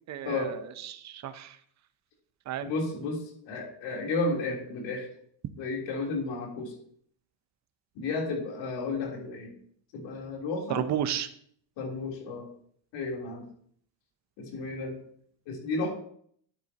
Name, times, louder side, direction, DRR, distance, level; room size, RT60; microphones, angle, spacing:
voice 1, 0.1-1.6 2.5-2.7 10.7-11.3, right 10 dB, 35° right, 10 dB, 0.8 m, -32 dB
voice 2, 2.6-5.1 5.6-6.7 8.0-9.5 9.9-10.9 11.8-12.5 12.9-13.4 14.4-14.9 15.5-15.9, left 3 dB, 70° left, -1 dB, 3.6 m, -32 dB
11.5 x 9.2 x 2.9 m, 0.62 s
cardioid pair, 140°, 47 cm